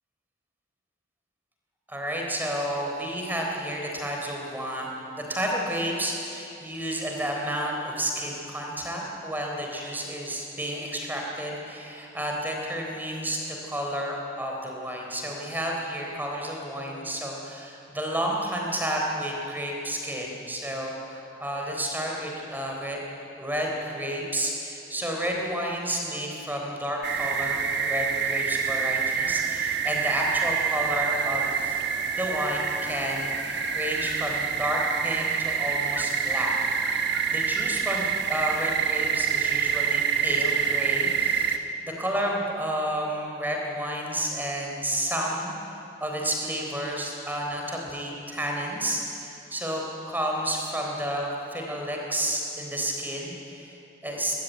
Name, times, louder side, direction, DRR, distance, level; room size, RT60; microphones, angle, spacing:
voice 1, 1.9-4.9 5.3-23.0 23.4-31.8 32.2-45.5 46.0-54.3, equal, 10° right, 0 dB, 3.8 m, -31 dB
sound 1, 27.0-41.6, right 7 dB, 55° right, 1.4 m, -27 dB
22.0 x 21.0 x 9.3 m, 2.8 s
head